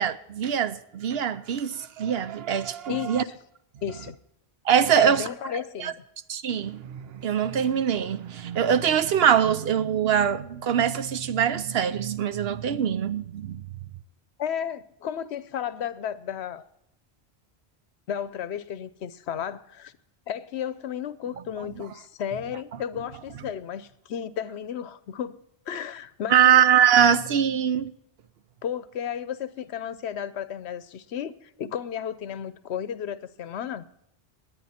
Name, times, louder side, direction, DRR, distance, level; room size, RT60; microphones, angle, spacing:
voice 1, 0.0-3.2 4.6-5.2 5.8-5.9 6.3-13.6 26.3-27.9, right 9 dB, 65° right, 0.9 m, -23 dB
voice 2, 2.9-3.3 3.8-4.2 4.9-5.9 14.4-16.6 18.1-19.9 20.3-25.3 25.7-26.7 28.6-33.9, left 9 dB, 75° left, 1.0 m, -33 dB
20.0 x 9.4 x 4.3 m
omnidirectional pair, 1.1 m